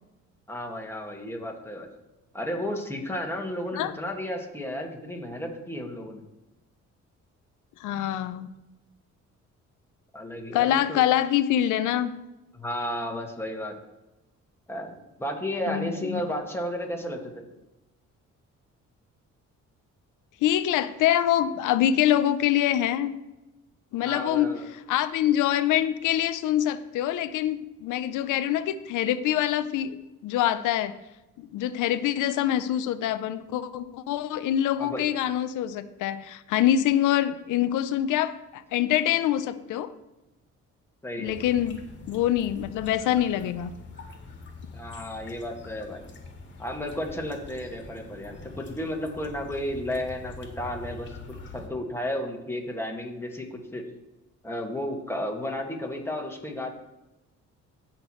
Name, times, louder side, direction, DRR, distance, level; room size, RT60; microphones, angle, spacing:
voice 1, 0.5-1.9 2.3-6.2 10.1-11.0 12.5-13.8 14.7-14.9 15.2-17.4 24.0-24.7 34.8-35.1 41.0-41.4 44.7-46.1 46.6-53.8 54.4-56.7, left 1 dB, 10° left, 1 dB, 2.0 m, -33 dB
voice 2, 7.8-8.5 10.5-12.1 15.7-16.3 20.4-23.2 23.9-24.5 24.9-30.0 30.2-31.0 31.4-39.9 41.2-41.8 42.1-43.7, left 11 dB, 90° left, 12 dB, 0.7 m, -25 dB
sound 1, 41.2-51.7, left 3 dB, 40° left, 2.0 m, -44 dB
16.0 x 6.0 x 3.2 m, 0.98 s
cardioid pair, 90°, 30 cm